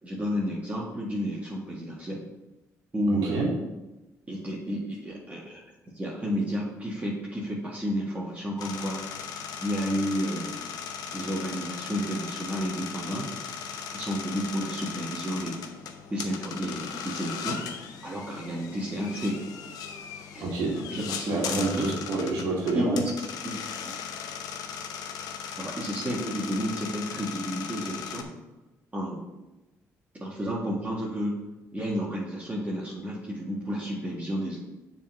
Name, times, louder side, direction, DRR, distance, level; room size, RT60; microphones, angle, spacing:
voice 1, 0.0-2.2 2.9-3.5 4.3-9.0 9.6-10.6 11.1-13.3 13.9-15.7 16.1-17.6 18.0-19.5 20.3-20.5 20.9-21.9 22.7-24.0 25.6-28.3 28.9-29.2 30.1-31.4 31.7-34.6, equal, 25° right, -5 dB, 2.0 m, -31 dB
voice 2, 3.1-3.5 20.4-23.0, right 3 dB, 90° right, -2 dB, 2.0 m, -29 dB
sound 1, 8.6-28.2, left 7 dB, 80° left, 0.7 m, -38 dB
7.0 x 4.2 x 6.4 m, 1.0 s
supercardioid pair, 70°, 6 cm